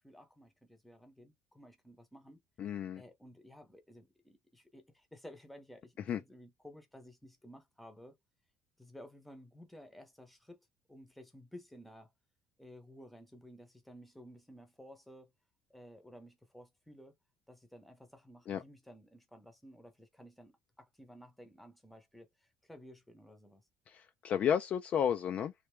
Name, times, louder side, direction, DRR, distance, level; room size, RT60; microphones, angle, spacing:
voice 1, 0.0-2.4 2.9-8.1 8.8-10.6 10.9-12.1 12.6-15.3 15.7-17.1 17.5-23.6, equal, ahead, 0.8 m, -55 dB
voice 2, 2.6-3.0 6.1-6.2 18.5-18.6 23.9-25.5, left 8 dB, 35° left, 0.3 m, -32 dB
3.3 x 2.6 x 3.2 m
cardioid pair, 175°, 4 cm